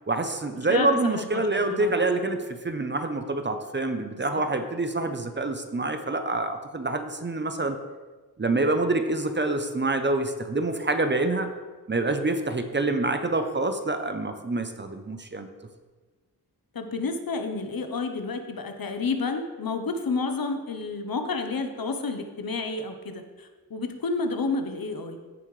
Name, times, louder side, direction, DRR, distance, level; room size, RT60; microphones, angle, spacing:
voice 1, 0.1-7.8 8.4-11.5 11.9-15.5, right 2 dB, 30° right, 7 dB, 0.7 m, -26 dB
voice 2, 1.1-2.1 4.1-4.4 16.7-25.2, left 4 dB, 65° left, 6 dB, 0.9 m, -30 dB
14.5 x 5.6 x 3.2 m, 1.3 s
wide cardioid pair, 90°, 38 cm